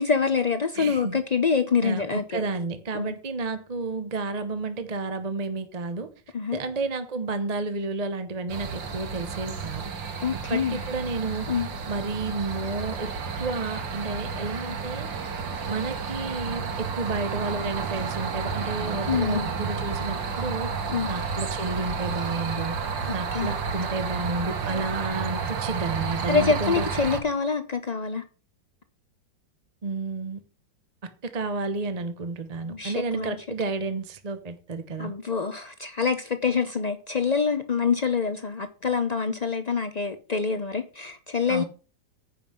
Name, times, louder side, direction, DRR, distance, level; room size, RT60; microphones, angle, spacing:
voice 1, 0.0-2.4 2.9-3.2 6.3-6.6 10.2-10.8 11.5-11.7 19.1-19.5 20.9-21.1 23.0-23.5 26.3-28.2 32.7-33.4 35.0-41.6, left 5 dB, 60° left, 0.4 m, -26 dB
voice 2, 0.8-1.2 1.8-6.1 6.5-9.9 10.5-15.1 15.7-20.7 21.1-22.7 23.1-26.9 29.8-30.4 31.0-35.1 41.5-41.6, right 3 dB, 30° right, 0.8 m, -31 dB
sound 1, 8.5-27.2, right 5 dB, 85° right, 2.2 m, -31 dB
9.9 x 5.5 x 7.6 m
omnidirectional pair, 2.0 m